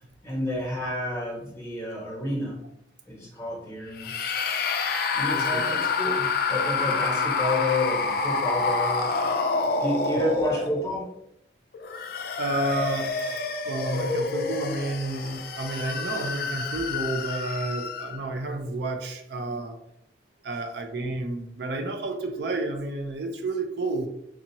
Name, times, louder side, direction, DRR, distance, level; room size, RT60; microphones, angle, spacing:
voice 1, 0.2-2.6 3.1-4.1 5.1-9.1 9.8-11.1, left 1 dB, 15° left, -5 dB, 1.3 m, -30 dB
sound 1, 4.0-11.0 11.7-18.3, left 4 dB, 50° left, 0.3 m, -28 dB
voice 2, 5.3-5.8 10.2-10.4 12.4-13.1 13.7-19.8 20.4-24.1, right 2 dB, 60° right, 4 dB, 0.4 m, -31 dB
3.6 x 2.7 x 2.8 m, 0.76 s
head